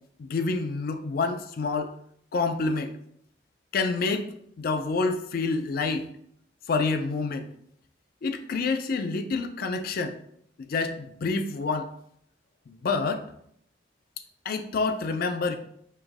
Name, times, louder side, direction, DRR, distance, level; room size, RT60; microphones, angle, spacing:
voice 1, 0.2-1.9 2.3-2.9 3.7-6.1 6.7-7.5 8.2-10.2 10.6-11.9 12.7-13.2 14.5-15.6, left 4 dB, 55° left, 8 dB, 0.4 m, -28 dB
4.6 x 2.6 x 2.5 m, 0.70 s
head